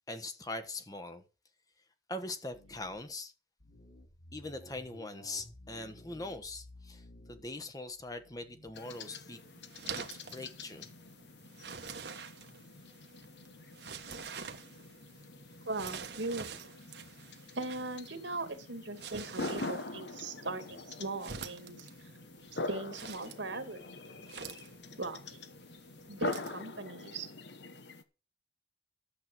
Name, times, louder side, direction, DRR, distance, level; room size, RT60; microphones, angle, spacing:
voice 1, 0.1-1.2 2.1-3.3 4.3-9.4 9.9-10.1 10.3-10.9, left 2 dB, 20° left, 1.1 m, -42 dB
sound 1, 2.5-3.2 3.6-8.7, left 1 dB, 85° left, 5.0 m, -55 dB
sound 2, 8.7-28.0, left 3 dB, 70° left, 1.2 m, -44 dB
sound 3, 8.8-26.6, right 6 dB, 65° right, 1.3 m, -47 dB
voice 2, 15.6-16.7 17.5-21.9 22.6-23.8 25.0-25.4 26.1-27.3, right 2 dB, 80° right, 2.3 m, -39 dB
12.0 x 7.6 x 6.1 m
head